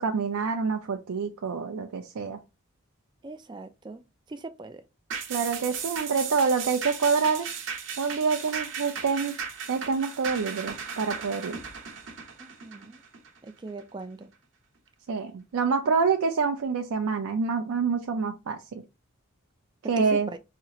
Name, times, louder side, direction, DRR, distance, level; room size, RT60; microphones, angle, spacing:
voice 1, 0.0-2.4 5.3-7.5 8.0-9.3 9.7-11.5 15.1-18.8 19.9-20.3, right 5 dB, 85° right, 0.4 m, -27 dB
voice 2, 3.2-4.0 4.3-4.8 12.4-13.0 13.4-14.3 20.0-20.4, right 2 dB, 20° right, 0.3 m, -40 dB
sound 1, 5.1-13.8 14.2-14.3, right 6 dB, 60° right, 0.9 m, -36 dB
4.2 x 2.8 x 2.4 m
head